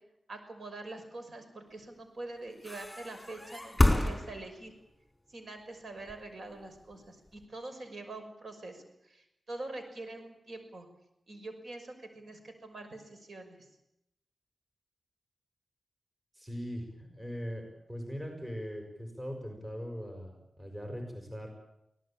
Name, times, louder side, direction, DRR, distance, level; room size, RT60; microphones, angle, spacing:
voice 1, 0.3-4.7 5.3-10.9 11.3-13.7, right 2 dB, 65° right, 6 dB, 6.0 m, -44 dB
sound 1, 2.6-4.8 6.0-7.4, left 1 dB, 10° left, 4.5 m, -29 dB
voice 2, 16.3-21.5, equal, 20° right, 3 dB, 6.1 m, -40 dB
24.0 x 17.5 x 8.9 m, 0.83 s
cardioid pair, 65°, 0 cm